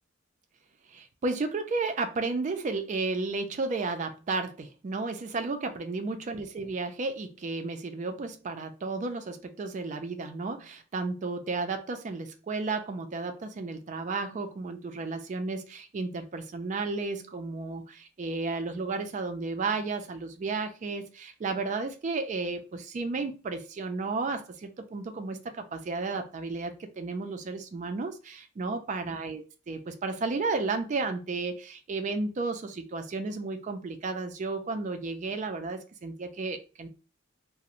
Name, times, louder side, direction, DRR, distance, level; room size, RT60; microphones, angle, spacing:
voice 1, 0.9-36.9, right 3 dB, 35° right, 7 dB, 0.3 m, -33 dB
2.4 x 2.0 x 2.8 m, 0.34 s
head